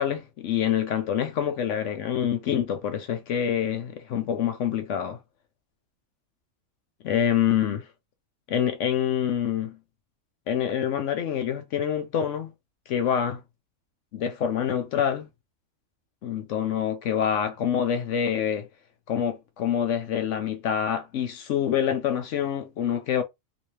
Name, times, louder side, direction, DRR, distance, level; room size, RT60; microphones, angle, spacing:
voice 1, 0.0-5.2 7.0-7.9 8.5-9.8 10.5-12.5 12.9-13.4 14.1-15.3 16.2-18.7 19.1-23.2, left 9 dB, 65° left, 0.9 m, -26 dB
2.9 x 2.7 x 3.1 m
omnidirectional pair, 1.5 m